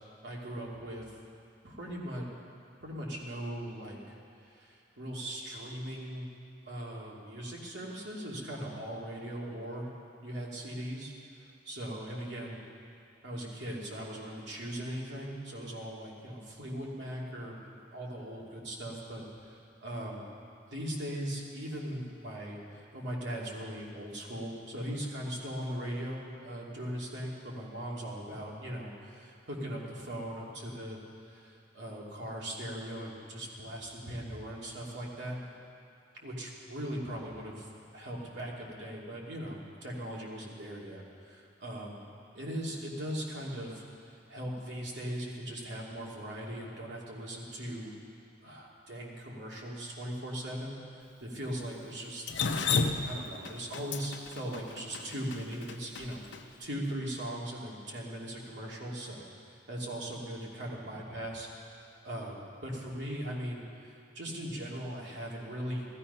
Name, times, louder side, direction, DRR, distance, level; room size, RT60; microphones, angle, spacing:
voice 1, 0.2-1.1 1.6-2.3 2.8-6.3 6.7-9.9 10.2-12.6 13.2-20.2 20.7-31.0 31.2-35.4 36.2-42.0 42.3-47.9 48.4-52.3 52.7-56.2 56.6-59.3 59.7-65.9, equal, 70° right, -3 dB, 2.7 m, -39 dB
Drip, 52.3-56.4, left 5 dB, 80° left, 0.8 m, -31 dB
15.5 x 14.0 x 5.6 m, 2.5 s
head